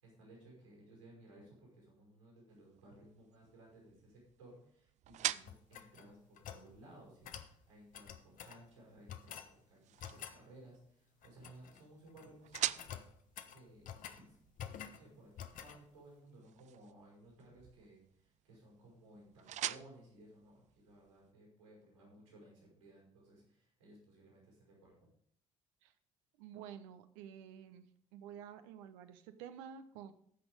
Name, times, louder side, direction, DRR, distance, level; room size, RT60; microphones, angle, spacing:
voice 1, 0.0-12.9 13.5-13.9 14.2-14.4 14.7-25.1, right 1 dB, 85° right, -2 dB, 5.7 m, -59 dB
sound 1, 2.5-21.3, right 12 dB, 45° right, 0.4 m, -47 dB
sound 2, 5.4-6.7 7.2-7.5 7.9-8.6 9.1-9.5 10.0-10.4 11.2-11.8 12.1-12.3 12.5-14.2 14.6-15.0 15.4-15.8, left 9 dB, 55° left, 0.9 m, -49 dB
voice 2, 26.4-27.9 28.1-30.1, right 9 dB, 70° right, 10 dB, 0.8 m, -50 dB
14.5 x 6.1 x 5.1 m, 0.64 s
figure-of-eight pair, 50°, 16 cm